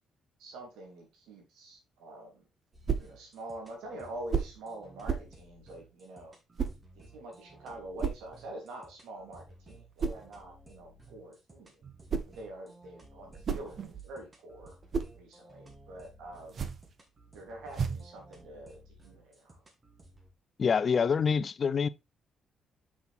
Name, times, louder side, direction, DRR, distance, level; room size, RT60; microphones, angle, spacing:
voice 1, 0.4-2.4 3.0-6.3 6.9-11.8 12.3-14.8 15.1-16.6 17.3-19.6, right 1 dB, 90° right, 3.2 m, -46 dB
sound 1, 2.7-20.3, right 1 dB, 30° right, 2.7 m, -56 dB
sound 2, 2.8-3.2 4.3-4.6 5.0-5.4 6.6-6.8 8.0-8.3 10.0-10.3 11.8-12.4 13.2-14.2 14.6-15.2 16.4-16.9 17.7-18.1, right 6 dB, 50° right, 0.9 m, -33 dB
voice 2, 20.6-21.9, left 6 dB, 45° left, 0.5 m, -26 dB
6.3 x 5.9 x 3.6 m
cardioid pair, 90°, 0 cm